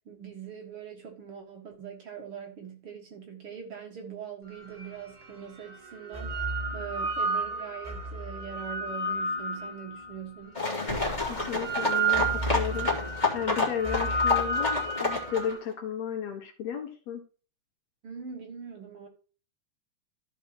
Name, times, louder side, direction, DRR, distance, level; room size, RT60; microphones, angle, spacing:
voice 1, 0.1-10.6 18.0-19.1, right 7 dB, 50° right, 2.3 m, -42 dB
sound 1, 4.8-4.9 5.9-10.1 10.9-15.6, right 2 dB, 30° right, 0.7 m, -31 dB
sound 2, 10.6-15.5, left 3 dB, 15° left, 2.5 m, -29 dB
voice 2, 11.3-12.9 13.3-17.2, left 8 dB, 65° left, 2.9 m, -34 dB
14.5 x 5.5 x 3.0 m
omnidirectional pair, 3.4 m